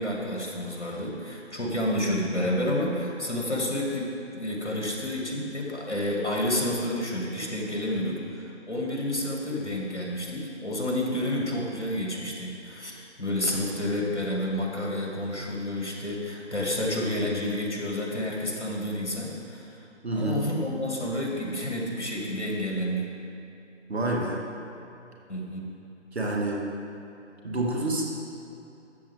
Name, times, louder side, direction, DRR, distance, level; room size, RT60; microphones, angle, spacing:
voice 1, 0.0-19.8 20.1-23.1 25.3-25.7, left 1 dB, 75° left, -1 dB, 2.3 m, -30 dB
voice 2, 20.0-20.4 23.9-24.4 26.1-26.6 27.4-28.0, right 2 dB, 65° right, -1 dB, 1.7 m, -27 dB
13.0 x 7.7 x 3.6 m, 2.8 s
figure-of-eight pair, 150°, 35 cm